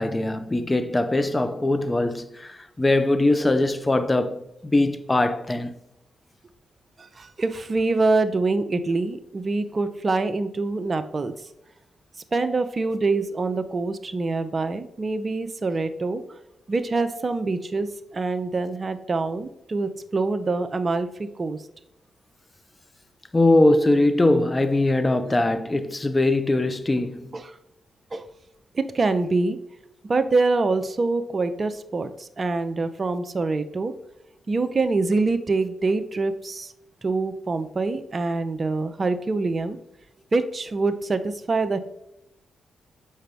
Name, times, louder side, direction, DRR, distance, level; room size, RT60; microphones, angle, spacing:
voice 1, 0.0-5.7 23.3-27.4, left 2 dB, 25° left, 0.7 m, -21 dB
voice 2, 7.0-11.3 12.3-16.2 16.7-21.6 25.2-25.4 27.3-27.4 28.1-28.3 28.7-29.6 30.0-33.9 34.5-36.7 37.0-39.8 40.3-41.8, right 3 dB, 45° right, 0.6 m, -25 dB
6.5 x 4.9 x 3.4 m
supercardioid pair, 50°, 0 cm